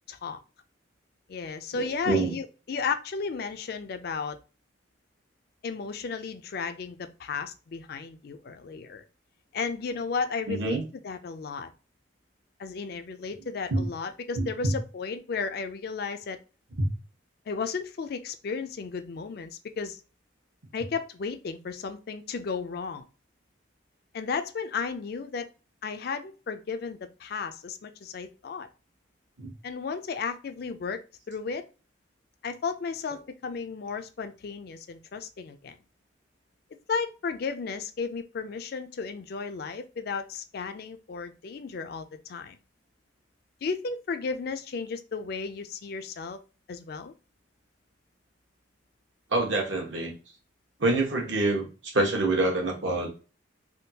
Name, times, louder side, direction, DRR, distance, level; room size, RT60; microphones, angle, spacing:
voice 1, 0.1-0.4 1.3-4.4 5.6-9.0 9.5-11.7 12.6-16.4 17.5-20.0 20.7-23.1 24.1-25.5 25.8-28.7 29.6-31.0 31.3-31.6 32.4-35.8 36.9-42.6 43.6-46.4 46.7-47.1, left 5 dB, 55° left, 9 dB, 0.4 m, -34 dB
voice 2, 1.7-2.3 10.5-10.8 13.7-13.9 14.3-14.7 16.8-16.9 29.4-29.5 49.3-50.1 50.8-53.1, right 2 dB, 70° right, 0 dB, 1.1 m, -26 dB
3.6 x 2.3 x 2.7 m, 0.33 s
head